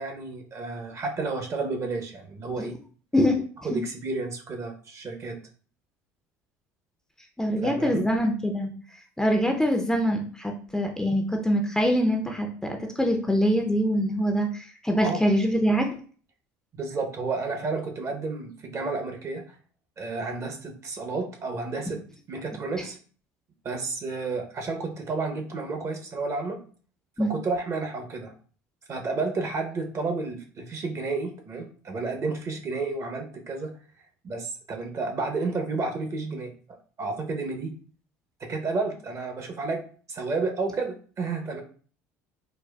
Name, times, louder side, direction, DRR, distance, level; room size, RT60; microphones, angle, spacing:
voice 1, 0.0-2.7 3.6-5.4 7.6-8.1 15.0-15.2 16.7-19.6 20.0-22.0 22.3-23.0 23.6-26.6 27.2-28.3 28.9-33.7 34.2-36.5 37.0-37.8 38.4-39.8 40.1-41.6, right 3 dB, 40° right, 4 dB, 0.7 m, -31 dB
voice 2, 7.4-8.7 9.2-15.9 27.2-27.3, equal, 5° left, 3 dB, 0.5 m, -24 dB
4.1 x 2.2 x 2.2 m, 0.42 s
hypercardioid pair, 75°, 8 cm